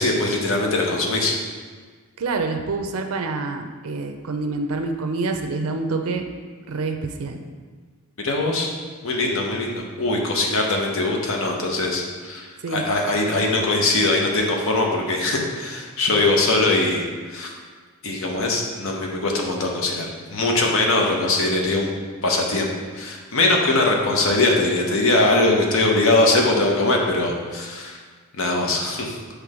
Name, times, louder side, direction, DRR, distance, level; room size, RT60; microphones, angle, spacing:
voice 1, 0.0-1.3 8.2-8.7 9.0-17.5 18.0-21.9 22.2-28.0 28.3-29.2, left 2 dB, 60° left, 0 dB, 0.9 m, -21 dB
voice 2, 2.2-6.3 6.7-7.4 12.6-12.8, right 3 dB, 65° right, 5 dB, 0.4 m, -27 dB
6.0 x 3.3 x 4.9 m, 1.5 s
head